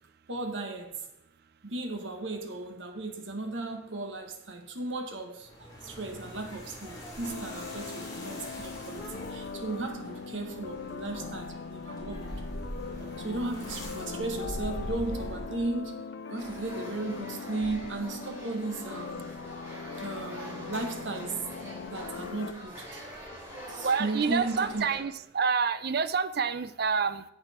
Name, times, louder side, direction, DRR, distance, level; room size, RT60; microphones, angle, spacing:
voice 1, 0.3-1.0 1.6-5.5 5.8-12.5 13.2-16.0 16.3-19.4 20.0-21.5 21.9-23.2 23.7-24.9, right 2 dB, 80° right, 1.6 m, -36 dB
sound 1, 5.4-15.8, equal, 20° left, 3.2 m, -42 dB
sound 2, 7.2-22.5, left 5 dB, 70° left, 0.5 m, -41 dB
sound 3, 16.3-25.0, equal, 15° right, 4.1 m, -44 dB
voice 2, 23.8-27.2, right 5 dB, 55° right, 0.6 m, -28 dB
10.5 x 7.9 x 4.4 m
head